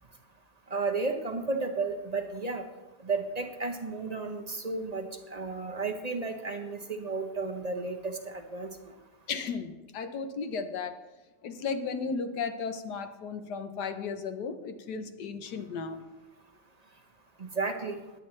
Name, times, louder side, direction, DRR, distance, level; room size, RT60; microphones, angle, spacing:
voice 1, 0.7-2.6 3.0-8.7 17.4-18.0, right 3 dB, 35° right, 4 dB, 0.6 m, -33 dB
voice 2, 9.3-11.0 11.4-16.0, left 5 dB, 70° left, 9 dB, 1.4 m, -35 dB
20.0 x 8.8 x 3.2 m, 1.1 s
omnidirectional pair, 1.9 m